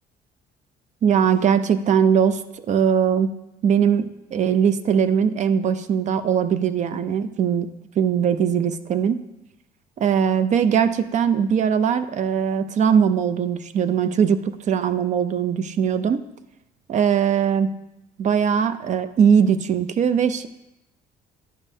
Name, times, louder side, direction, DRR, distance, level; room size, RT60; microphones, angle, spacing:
voice 1, 1.0-3.3 3.6-7.7 8.0-9.2 10.0-16.2 16.9-17.7 18.2-20.5, right 7 dB, 45° right, 12 dB, 0.5 m, -20 dB
11.0 x 5.3 x 2.7 m, 0.91 s
cardioid pair, 110°, 17 cm